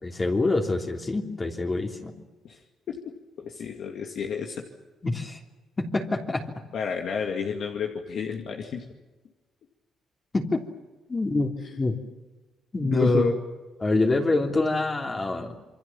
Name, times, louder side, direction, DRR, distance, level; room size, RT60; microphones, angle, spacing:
voice 1, 0.0-2.1 5.0-5.4 5.8-6.4 10.3-10.6 11.1-12.0 12.7-13.3 13.8-15.6, left 2 dB, 25° left, 1 dB, 3.2 m, -25 dB
voice 2, 2.9-4.6 6.7-8.8 11.6-11.8 12.8-13.3, left 6 dB, 65° left, 2 dB, 2.4 m, -31 dB
27.5 x 23.5 x 7.3 m, 1.2 s
cardioid pair, 90°, 0 cm